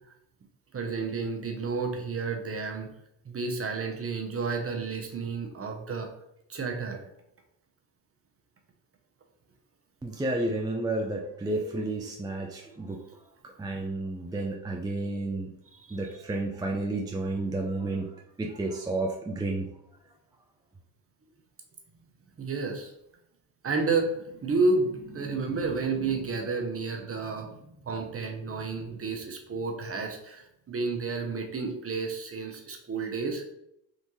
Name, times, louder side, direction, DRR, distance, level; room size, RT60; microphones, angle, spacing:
voice 1, 0.7-2.9 3.2-6.1 6.5-7.0 15.7-16.0 22.4-22.9 23.6-33.4, right 4 dB, 35° right, 3 dB, 0.8 m, -31 dB
voice 2, 10.0-13.0 13.6-15.5 15.9-19.7, right 2 dB, 10° right, 0 dB, 0.4 m, -31 dB
3.6 x 2.5 x 3.0 m, 0.79 s
supercardioid pair, 65°, 42 cm